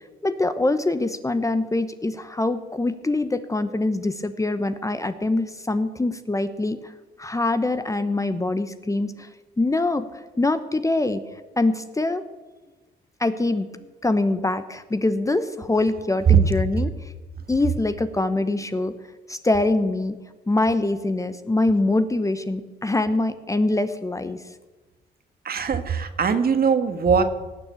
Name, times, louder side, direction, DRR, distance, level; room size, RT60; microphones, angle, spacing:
voice 1, 0.2-6.9 7.2-9.3 9.6-11.2 11.6-12.2 13.2-13.7 14.0-16.9 17.5-18.9 19.3-20.2 20.5-24.4, left 2 dB, 15° left, 11 dB, 0.9 m, -24 dB
voice 2, 25.4-27.2, right 7 dB, 50° right, 9 dB, 1.5 m, -20 dB
18.5 x 7.0 x 8.4 m, 1.2 s
cardioid pair, 90°, 20 cm